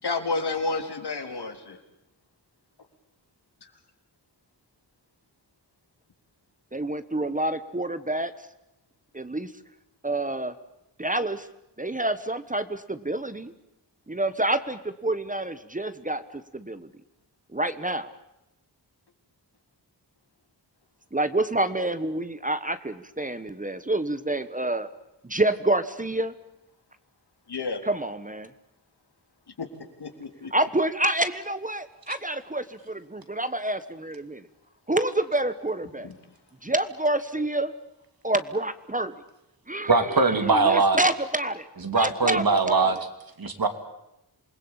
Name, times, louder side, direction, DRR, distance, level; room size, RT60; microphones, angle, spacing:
voice 1, 0.0-1.8 27.5-27.8 29.6-29.7 30.0-30.5 36.0-36.1, left 3 dB, 70° left, 5 dB, 4.0 m, -30 dB
voice 2, 6.7-8.3 9.1-9.5 10.0-10.5 11.0-11.5 11.8-13.5 14.1-16.9 17.5-18.1 21.1-24.9 25.2-26.3 27.8-28.5 30.5-34.4 34.9-36.1 36.6-37.7 38.2-39.1 39.7-42.9, right 1 dB, 20° right, 12 dB, 1.3 m, -28 dB
voice 3, 39.9-41.0 41.8-43.0 43.4-43.7, right 4 dB, 60° right, 8 dB, 2.9 m, -21 dB
28.0 x 21.0 x 8.8 m, 0.89 s
wide cardioid pair, 120°, 40 cm